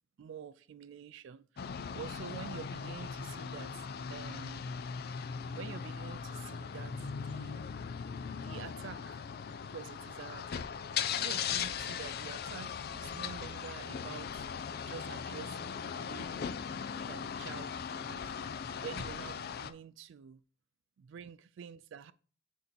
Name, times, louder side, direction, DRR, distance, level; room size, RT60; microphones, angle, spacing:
voice 1, 0.2-1.6 1.9-4.7 5.5-7.7 8.4-9.2 9.6-10.7 10.9-14.5 14.8-16.6 17.1-18.3 18.8-20.4 21.0-22.1, right 7 dB, 65° right, 0.3 m, -48 dB
sound 1, 1.6-19.7, left 7 dB, 50° left, 0.4 m, -39 dB
6.4 x 2.9 x 5.2 m
head